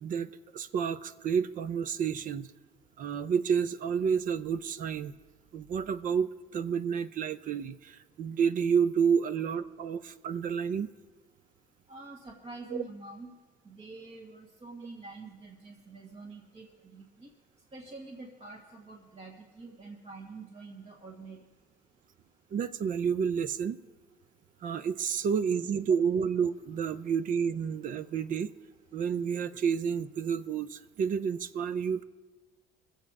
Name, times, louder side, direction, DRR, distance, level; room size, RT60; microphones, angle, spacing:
voice 1, 0.0-2.5 3.0-5.1 5.5-10.9 12.7-12.8 22.5-23.8 24.6-28.5 28.9-32.0, right 7 dB, 50° right, 14 dB, 0.5 m, -30 dB
voice 2, 11.9-13.3 13.6-17.3 17.7-21.4, right 3 dB, 35° right, -1 dB, 1.6 m, -46 dB
21.0 x 7.7 x 4.8 m, 1.3 s
cardioid pair, 110°, 17 cm